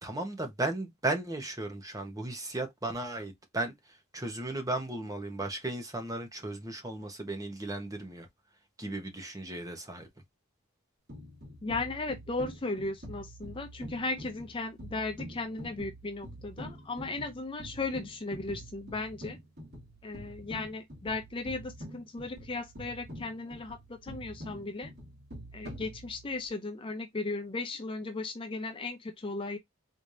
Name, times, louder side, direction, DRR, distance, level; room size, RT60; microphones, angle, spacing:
voice 1, 0.0-3.7 4.1-8.3 8.8-10.1, right 2 dB, 15° right, 1.0 m, -35 dB
sound 1, 11.1-26.5, equal, 45° right, 2.4 m, -46 dB
voice 2, 11.6-19.4 20.0-24.9 25.5-29.6, left 3 dB, 25° left, 0.4 m, -36 dB
4.1 x 3.3 x 2.6 m
head